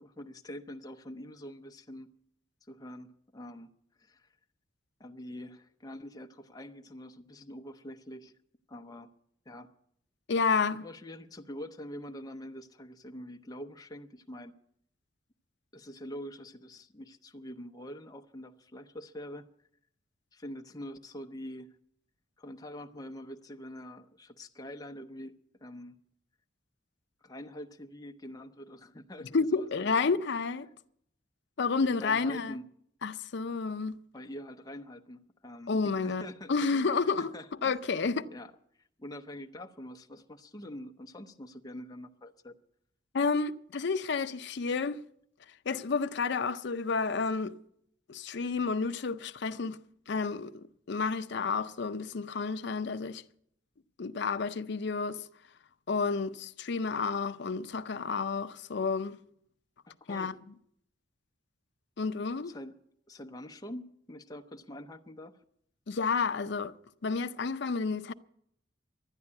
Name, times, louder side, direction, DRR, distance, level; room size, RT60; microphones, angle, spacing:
voice 1, 0.0-2.1 2.6-3.7 4.0-4.3 5.0-8.3 8.7-9.1 9.5-9.7 10.8-14.5 15.7-19.5 20.3-21.8 22.4-25.9 27.2-30.2 31.7-32.6 34.1-36.9 37.2-37.8 38.3-42.5 59.9-60.4 62.4-62.8 63.1-65.4, left 1 dB, 20° left, 0.7 m, -45 dB
voice 2, 10.3-10.8 29.3-30.7 31.6-32.6 33.0-34.0 35.7-37.3 37.6-38.3 43.1-45.0 45.7-47.6 48.1-49.8 50.1-53.2 54.0-55.3 55.9-59.2 60.1-60.3 62.0-62.5 65.9-66.7 67.0-68.1, left 4 dB, 60° left, 0.5 m, -30 dB
12.0 x 9.7 x 9.7 m
head